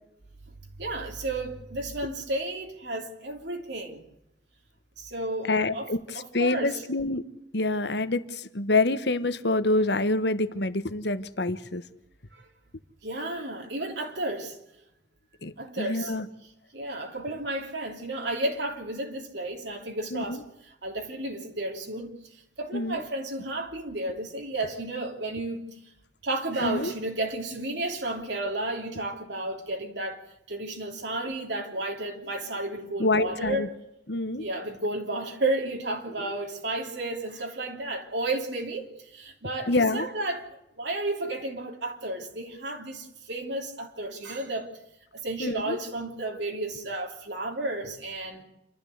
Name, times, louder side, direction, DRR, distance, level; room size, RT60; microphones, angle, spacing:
voice 1, 0.8-4.0 5.0-6.8 12.3-12.5 13.0-14.6 15.6-25.8 26.2-30.2 30.5-33.7 34.4-44.7 45.2-48.4, right 2 dB, 65° right, 3.0 m, -32 dB
voice 2, 5.5-6.0 6.3-7.2 7.5-8.2 8.5-11.8 15.4-16.2 20.1-20.4 22.7-23.0 26.6-26.9 33.0-33.7 34.1-34.4 39.7-40.0 45.4-45.8, left 2 dB, 60° left, 1.3 m, -26 dB
28.5 x 12.5 x 8.1 m
head